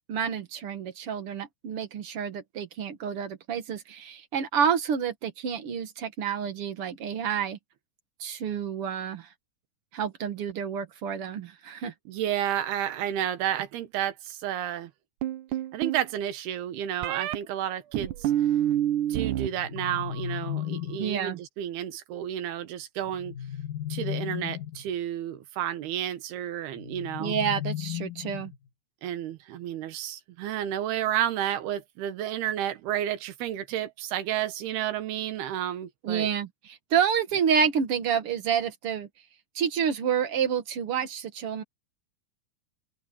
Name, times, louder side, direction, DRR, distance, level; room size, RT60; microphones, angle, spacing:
voice 1, 0.1-7.6 8.2-9.3 9.9-11.9 21.0-21.4 27.2-28.5 36.0-39.1 39.6-41.6, right 7 dB, 50° right, 1.8 m, -29 dB
voice 2, 12.1-14.9 15.7-18.3 19.1-23.3 23.9-27.4 29.0-36.3, right 11 dB, 90° right, 3.4 m, -31 dB
sound 1, 15.2-16.0 17.0-17.4 17.9-19.5 19.8-20.3, right 12 dB, 70° right, 2.1 m, -27 dB
sound 2, 19.3-21.2 23.0-24.9 26.7-28.7, left 11 dB, 60° left, 3.8 m, -35 dB
open air
omnidirectional pair, 4.4 m